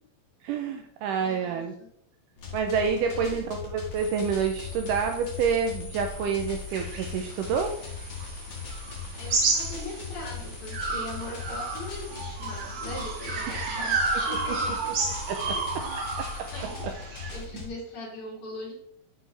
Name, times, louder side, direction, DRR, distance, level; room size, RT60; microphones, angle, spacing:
voice 1, 0.4-1.7 2.5-7.7 15.3-15.6 16.4-16.5 16.8-16.9, right 6 dB, 85° right, 5 dB, 1.9 m, -28 dB
voice 2, 1.1-1.9 3.1-3.5 9.1-14.9 15.4-18.7, left 1 dB, 75° left, -6 dB, 5.1 m, -41 dB
sound 1, 2.4-17.7, left 5 dB, 45° left, 1.6 m, -39 dB
sound 2, 3.9-16.8, left 2 dB, 30° left, 2.0 m, -46 dB
sound 3, 6.7-10.3 10.7-17.4, right 4 dB, 70° right, 1.5 m, -31 dB
10.0 x 4.6 x 3.3 m, 0.72 s
omnidirectional pair, 4.2 m